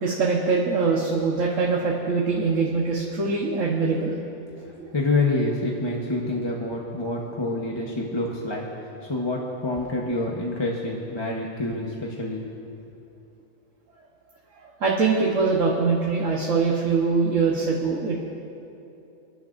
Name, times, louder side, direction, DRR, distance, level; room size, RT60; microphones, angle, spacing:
voice 1, 0.0-4.2 4.8-4.9 14.8-18.3, right 4 dB, 75° right, -3 dB, 1.6 m, -23 dB
voice 2, 4.6-8.6 9.0-12.4, left 2 dB, 20° left, -3 dB, 1.1 m, -27 dB
30.0 x 11.0 x 2.6 m, 2.8 s
omnidirectional pair, 1.4 m